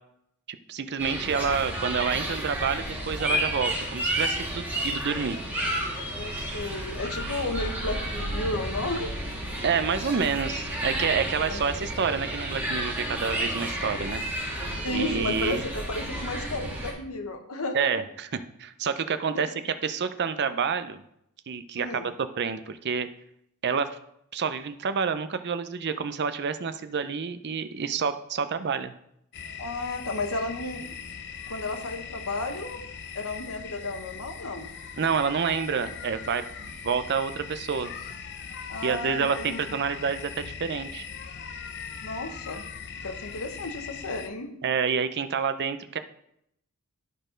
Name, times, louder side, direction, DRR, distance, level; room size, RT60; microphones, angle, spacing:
voice 1, 0.5-5.4 9.6-14.2 14.9-15.6 17.7-18.0 18.3-21.0 21.5-23.1 23.6-24.0 24.3-28.9 35.0-37.9 38.8-41.0 44.6-46.0, right 6 dB, 50° right, 11 dB, 0.5 m, -28 dB
sound 1, 1.0-16.9, right 1 dB, 10° right, 1.8 m, -31 dB
voice 2, 6.2-9.1 11.5-11.6 14.8-17.9 19.3-19.5 21.8-22.1 29.6-30.9 31.5-32.8 33.1-34.7 38.7-39.6 42.0-42.6 43.0-44.5, left 2 dB, 75° left, 5 dB, 1.1 m, -33 dB
sound 2, 29.3-44.3, left 6 dB, 50° left, 0.6 m, -40 dB
11.0 x 4.3 x 5.1 m, 0.75 s
head